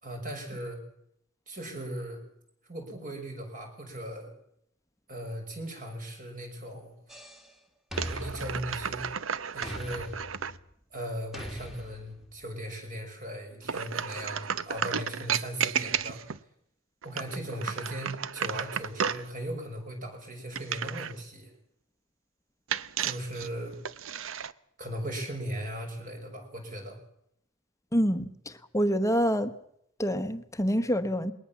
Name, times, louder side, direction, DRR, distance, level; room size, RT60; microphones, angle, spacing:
voice 1, 0.0-0.8 1.5-2.2 2.7-4.3 5.1-6.9 8.0-9.1 9.5-10.1 10.9-16.2 17.0-21.5 23.0-23.8 24.8-27.0, right 1 dB, 40° right, 5.9 m, -38 dB
sound 1, 7.1-7.5 7.9-9.2 9.6-10.7 11.3-12.4, left 1 dB, ahead, 2.0 m, -41 dB
sound 2, 7.9-10.6 13.6-16.4 17.0-19.3 20.5-21.2 22.7-24.5, right 7 dB, 70° right, 0.7 m, -33 dB
voice 2, 27.9-28.3 28.7-29.5 30.0-31.3, equal, 15° left, 1.1 m, -26 dB
21.0 x 19.0 x 7.2 m
head